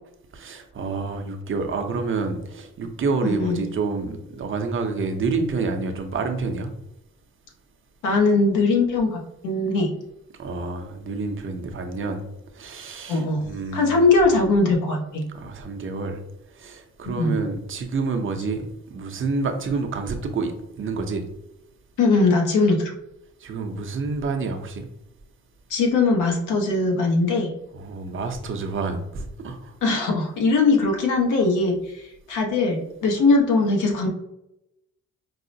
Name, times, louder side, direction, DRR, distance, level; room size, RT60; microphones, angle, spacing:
voice 1, 0.3-6.7 10.4-12.2 12.6-14.0 15.3-16.2 16.6-18.7 18.9-20.5 20.8-21.2 23.4-24.9 27.7-29.7, right 4 dB, 45° right, 6 dB, 0.6 m, -28 dB
voice 2, 3.2-3.6 8.0-9.9 13.1-13.4 13.7-15.2 17.0-17.4 22.0-22.9 25.7-27.5 29.8-34.1, left 3 dB, 85° left, 1 dB, 0.9 m, -20 dB
4.7 x 2.0 x 2.6 m, 0.86 s
cardioid pair, 90°, 30 cm